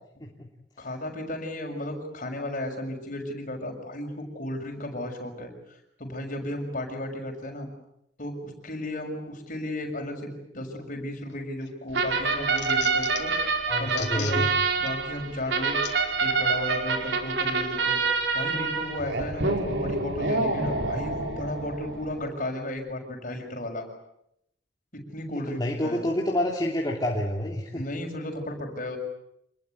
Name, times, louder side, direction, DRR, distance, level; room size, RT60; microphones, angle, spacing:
voice 1, 0.8-7.7 8.2-13.3 13.8-14.5 14.8-15.8 16.2-18.0 18.3-23.9 24.9-26.1 27.7-29.0, left 1 dB, 45° left, 3 dB, 6.9 m, -34 dB
sound 1, 11.3-11.7 12.1-13.4 13.9-14.4 14.9-15.0 15.8-16.0 16.7-16.9, left 9 dB, 65° left, 3.7 m, -38 dB
sound 2, 11.9-22.3, right 4 dB, 70° right, 4.7 m, -27 dB
voice 2, 13.7-14.5 25.5-27.8, left 1 dB, 20° left, -1 dB, 2.9 m, -28 dB
27.0 x 21.5 x 9.4 m, 0.78 s
head